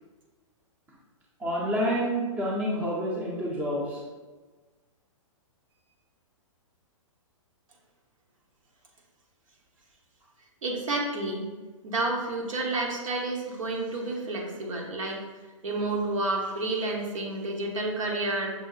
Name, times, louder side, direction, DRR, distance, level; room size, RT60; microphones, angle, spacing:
voice 1, 1.4-4.0, equal, 10° right, -4 dB, 0.6 m, -28 dB
voice 2, 10.6-11.5 11.8-15.2 15.6-18.5, right 2 dB, 75° right, 0 dB, 1.1 m, -30 dB
6.0 x 2.1 x 4.0 m, 1.3 s
hypercardioid pair, 155°, 17 cm